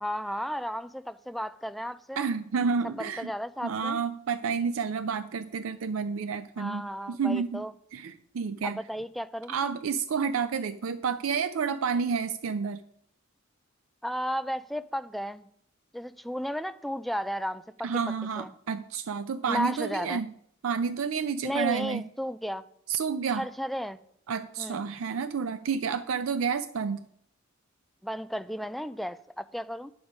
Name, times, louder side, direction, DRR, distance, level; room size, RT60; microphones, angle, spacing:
voice 1, 0.0-2.3 2.8-4.0 6.6-7.7 8.6-9.5 14.0-15.5 15.9-17.9 18.4-18.5 19.5-20.2 21.4-22.6 23.3-24.0 24.6-24.8 28.0-29.9, equal, ahead, 11 dB, 0.3 m, -34 dB
voice 2, 2.2-3.3 3.6-7.6 7.9-8.8 9.5-12.8 17.8-20.3 20.6-22.0 22.9-23.4 24.3-27.0, right 6 dB, 70° right, 11 dB, 0.4 m, -30 dB
9.4 x 7.1 x 5.0 m, 0.68 s
head